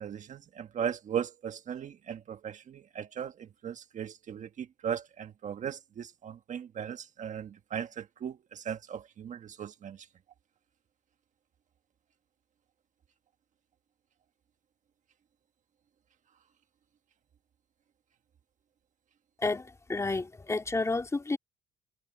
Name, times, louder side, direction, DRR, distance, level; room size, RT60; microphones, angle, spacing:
voice 1, 0.0-10.0, right 8 dB, 45° right, 1.4 m, -37 dB
voice 2, 19.4-21.4, left 3 dB, 15° left, 3.2 m, -31 dB
cardioid pair, 110°, 17 cm